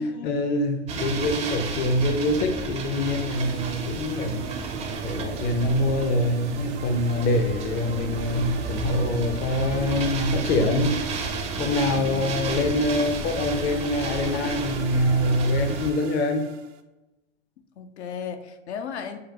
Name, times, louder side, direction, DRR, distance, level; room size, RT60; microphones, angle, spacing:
voice 1, 0.0-4.5 5.0-10.9 11.6-16.5, left 1 dB, 30° left, 5 dB, 0.5 m, -25 dB
sound 1, 0.9-15.9, right 3 dB, 20° right, 0.5 m, -32 dB
sound 2, 3.3-16.8, right 7 dB, 70° right, 0.5 m, -41 dB
voice 2, 11.9-12.3 17.8-19.2, left 7 dB, 70° left, 7 dB, 0.6 m, -35 dB
6.4 x 2.1 x 2.8 m, 1.1 s
hypercardioid pair, 100°, 35 cm